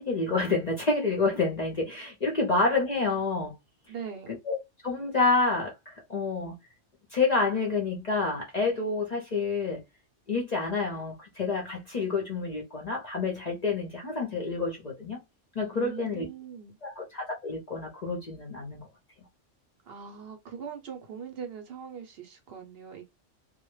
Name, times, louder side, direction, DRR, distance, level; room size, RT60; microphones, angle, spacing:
voice 1, 0.0-3.5 4.5-4.6 4.8-6.5 7.1-9.8 10.3-15.2 15.5-16.3 16.8-18.8, left 3 dB, 45° left, 0.5 m, -28 dB
voice 2, 3.9-4.4 15.7-16.7 19.9-23.1, right 7 dB, 65° right, 0.7 m, -41 dB
2.1 x 2.1 x 3.0 m
omnidirectional pair, 1.2 m